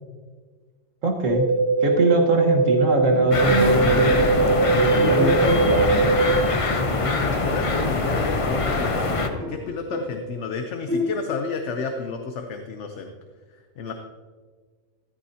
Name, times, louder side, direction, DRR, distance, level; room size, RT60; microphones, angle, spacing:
voice 1, 1.0-1.5 1.8-6.2, right 2 dB, 75° right, 2 dB, 1.8 m, -23 dB
sound 1, 1.3-6.3, right 3 dB, 55° right, 2.6 m, -21 dB
Bowed string instrument, 2.9-5.9 6.2-6.4 6.9-7.0 7.2-9.1 9.4-10.2 10.9-11.5, left 1 dB, 10° left, 4.1 m, -30 dB
sound 2, 3.3-9.3, left 3 dB, 30° left, 0.7 m, -24 dB
voice 2, 7.0-13.1 13.8-13.9, left 5 dB, 65° left, 5 dB, 1.1 m, -31 dB
13.5 x 13.5 x 2.8 m, 1.5 s
omnidirectional pair, 1.4 m